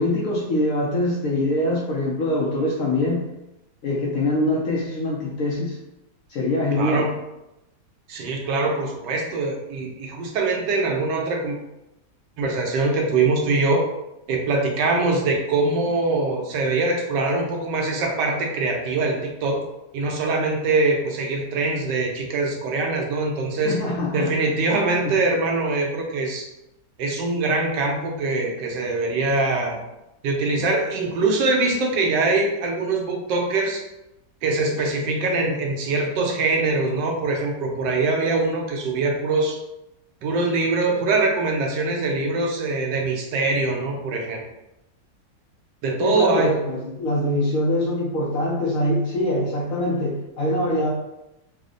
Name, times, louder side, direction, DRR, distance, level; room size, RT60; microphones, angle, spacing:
voice 1, 0.0-3.2 3.8-5.8 6.3-7.1 23.6-24.3 25.0-25.1 46.0-50.9, left 1 dB, 70° left, -3 dB, 0.8 m, -23 dB
voice 2, 6.7-7.1 8.1-11.6 12.4-13.9 14.3-19.6 19.9-23.8 24.1-26.5 27.0-29.8 30.2-33.8 34.4-39.6 40.2-44.4 45.8-46.5, right 3 dB, 85° right, 1 dB, 1.3 m, -23 dB
3.3 x 2.0 x 3.7 m, 0.91 s
omnidirectional pair, 1.9 m